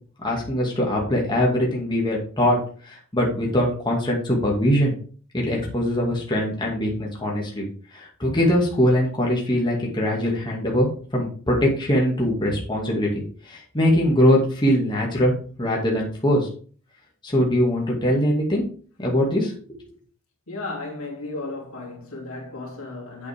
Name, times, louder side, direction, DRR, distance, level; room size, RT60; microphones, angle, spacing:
voice 1, 0.2-2.6 2.8-5.0 5.3-7.7 7.9-16.5 17.2-18.6 19.0-19.5, equal, 20° left, 2.2 m, -22 dB
voice 2, 20.5-23.3, left 2 dB, 75° left, 3.0 m, -34 dB
8.4 x 7.5 x 3.6 m
head